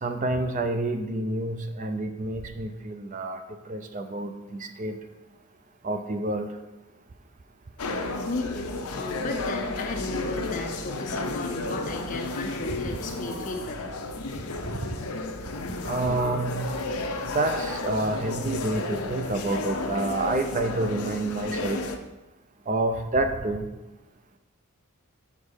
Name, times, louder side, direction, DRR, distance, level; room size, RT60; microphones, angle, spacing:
voice 1, 0.0-5.0 5.8-6.6 15.8-16.7 17.2-21.8 22.7-23.7, right 2 dB, 35° right, 7 dB, 0.5 m, -28 dB
sound 1, 7.8-22.0, left 2 dB, 85° left, 0.7 m, -32 dB
voice 2, 8.2-14.0, left 2 dB, 35° left, 2 dB, 0.5 m, -35 dB
5.3 x 5.1 x 6.4 m, 1.1 s
head